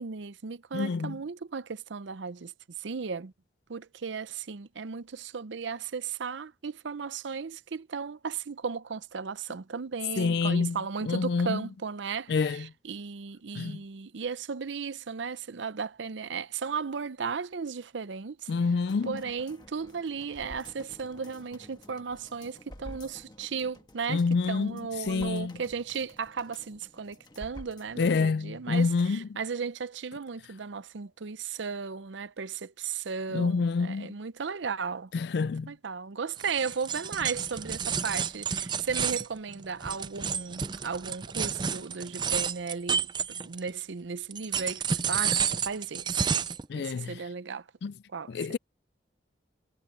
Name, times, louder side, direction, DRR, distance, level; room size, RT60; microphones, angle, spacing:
voice 1, 0.0-2.5 2.8-3.3 3.7-18.5 19.0-35.1 35.4-43.1 43.4-46.3 46.8-47.7 48.1-48.5, right 5 dB, 75° right, 0.6 m, -35 dB
voice 2, 0.7-1.1 10.2-10.8 11.0-11.6 12.3-12.7 13.5-13.8 18.5-19.2 24.1-24.8 25.1-25.5 28.0-29.3 33.3-34.1 35.1-35.7 46.7-47.2 47.8-47.9 48.3-48.6, left 4 dB, 60° left, 0.3 m, -27 dB
sound 1, 18.9-28.3 28.7-28.8, left 1 dB, 20° left, 1.4 m, -50 dB
sound 2, 36.4-43.8 44.3-46.6, right 7 dB, 25° right, 0.4 m, -30 dB
head